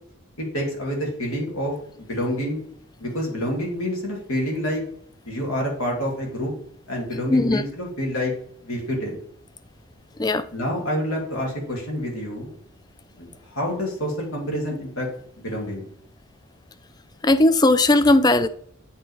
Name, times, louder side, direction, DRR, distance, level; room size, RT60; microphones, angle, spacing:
voice 1, 0.4-2.6 3.0-4.8 5.3-6.5 6.9-8.3 8.6-9.2 10.5-12.5 13.2-15.1 15.4-15.9, equal, 85° left, 2.6 m, -27 dB
voice 2, 7.3-7.6 10.2-10.4 17.2-18.5, left 2 dB, 20° left, 0.3 m, -17 dB
8.2 x 3.8 x 4.9 m
head